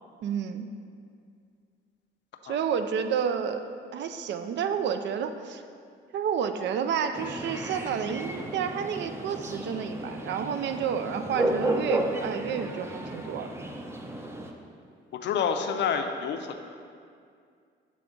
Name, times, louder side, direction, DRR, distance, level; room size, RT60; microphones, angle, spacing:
voice 1, 0.2-0.7 2.4-3.6 3.9-5.6 6.1-13.5, right 7 dB, 65° right, 8 dB, 0.4 m, -30 dB
sound 1, 7.1-14.5, right 1 dB, 15° right, 0.5 m, -33 dB
voice 2, 15.1-16.7, left 6 dB, 65° left, 6 dB, 0.5 m, -28 dB
7.5 x 3.5 x 3.7 m, 2.3 s
cardioid pair, 90°, 20 cm